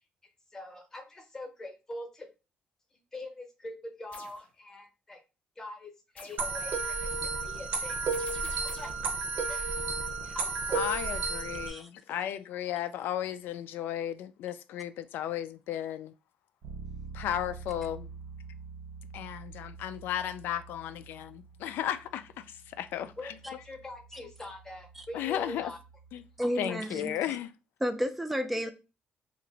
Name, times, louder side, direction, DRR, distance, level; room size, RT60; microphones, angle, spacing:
voice 1, 0.5-2.3 3.1-5.2 5.6-7.1 7.4-8.3 8.6-8.9 9.5-9.6 10.2-10.9 23.2-25.8 26.6-26.7, left 1 dB, 15° left, 0.8 m, -43 dB
sound 1, 4.1-4.4 6.2-6.5 8.1-9.0, left 5 dB, 50° left, 0.7 m, -49 dB
sound 2, 6.4-11.7, right 4 dB, 60° right, 0.7 m, -32 dB
voice 2, 10.7-16.1 17.1-18.1 19.1-23.1 25.1-25.7 26.1-26.2 26.6-27.5, left 11 dB, 85° left, 0.4 m, -34 dB
Bass guitar, 16.6-26.4, right 5 dB, 85° right, 1.1 m, -47 dB
voice 3, 26.4-27.1 27.8-28.7, equal, 5° right, 0.4 m, -31 dB
2.8 x 2.5 x 4.0 m
cardioid pair, 165°, 3 cm